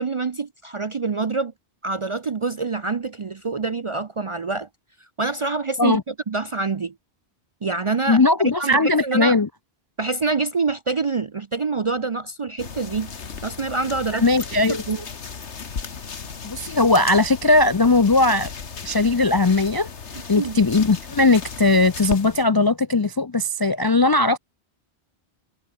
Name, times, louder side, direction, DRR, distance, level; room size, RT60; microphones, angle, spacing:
voice 1, 0.0-1.5 1.8-4.7 5.2-6.9 7.6-8.2 8.6-9.4 10.0-13.1 13.4-14.2 14.7-15.1 20.4-20.6, right 4 dB, 40° right, 0.5 m, -26 dB
voice 2, 8.1-9.5 14.1-14.8 16.4-18.5 18.8-19.9 20.3-24.4, left 3 dB, 35° left, 0.3 m, -18 dB
sound 1, 12.6-22.4, left 5 dB, 85° left, 1.9 m, -36 dB
omnidirectional pair, 1.1 m